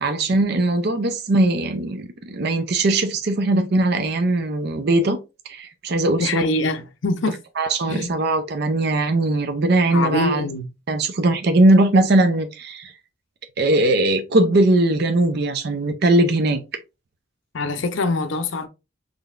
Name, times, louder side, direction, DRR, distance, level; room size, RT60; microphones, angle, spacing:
voice 1, 0.0-5.2 5.5-6.4 7.6-10.4 10.9-12.9 13.6-16.6, right 2 dB, 55° right, 0.5 m, -19 dB
voice 2, 6.2-7.4 7.9-8.1 9.9-10.7 17.5-18.7, left 2 dB, 70° left, 0.6 m, -24 dB
3.9 x 3.3 x 2.4 m
head